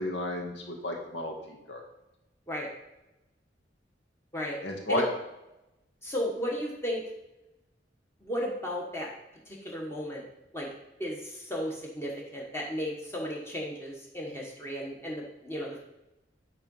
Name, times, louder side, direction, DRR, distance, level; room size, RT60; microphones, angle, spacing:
voice 1, 0.0-1.8 4.6-5.0, left 1 dB, 85° left, 1 dB, 1.8 m, -32 dB
voice 2, 6.0-7.0 8.2-9.1 9.4-10.2 10.5-10.7 11.0-15.8, equal, 15° left, -2 dB, 1.3 m, -34 dB
9.2 x 3.9 x 5.5 m, 0.94 s
head